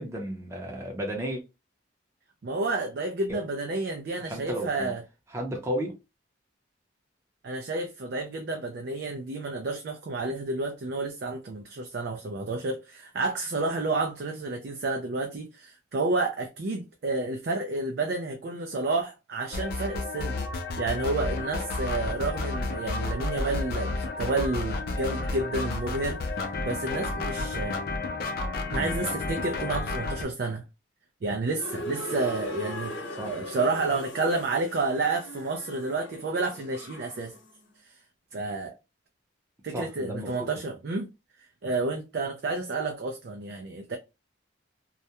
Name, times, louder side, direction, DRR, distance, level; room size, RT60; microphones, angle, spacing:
voice 1, 0.0-1.4 3.3-3.4 4.3-4.9 5.3-6.0 28.7-28.9 33.2-33.3 39.7-40.5, equal, 15° right, 0.6 m, -33 dB
voice 2, 2.4-5.0 7.4-20.4 20.8-26.2 26.6-27.8 28.7-30.6 31.2-32.9 33.2-37.4 37.8-37.9 38.3-38.7 39.6-41.1 41.6-44.0, right 3 dB, 55° right, 0.4 m, -30 dB
sound 1, 19.5-30.2, left 3 dB, 50° left, 0.4 m, -31 dB
sound 2, 31.6-37.5, left 1 dB, 75° left, 0.9 m, -39 dB
2.3 x 2.1 x 2.7 m
head